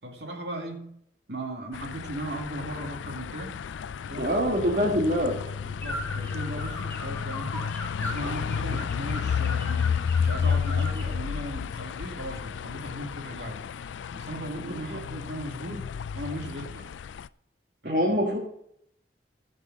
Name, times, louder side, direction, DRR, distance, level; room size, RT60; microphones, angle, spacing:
voice 1, 0.0-1.0 1.3-3.6 4.1-4.5 5.6-7.7 8.0-13.6 14.1-16.9 17.8-18.0, right 1 dB, 65° right, 2 dB, 2.4 m, -37 dB
sound 1, 1.7-17.3, left 6 dB, 85° left, 0.4 m, -31 dB
voice 2, 4.2-5.3 14.9-15.0 17.8-18.4, equal, 45° right, -1 dB, 1.6 m, -24 dB
sound 2, 5.8-11.1, left 1 dB, 10° left, 1.5 m, -39 dB
14.5 x 5.4 x 6.1 m, 0.73 s
head